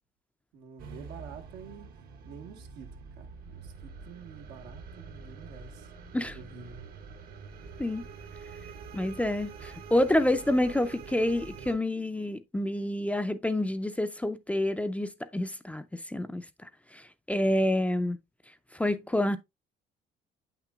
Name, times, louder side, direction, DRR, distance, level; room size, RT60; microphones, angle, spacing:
voice 1, 0.5-1.9 2.2-5.9 6.2-6.8, right 5 dB, 85° right, 1.3 m, -48 dB
sound 1, 0.8-11.7, right 5 dB, 60° right, 1.0 m, -45 dB
voice 2, 8.9-18.2 18.7-19.4, left 1 dB, 10° left, 0.5 m, -28 dB
8.2 x 6.0 x 2.3 m
cardioid pair, 110°, 17 cm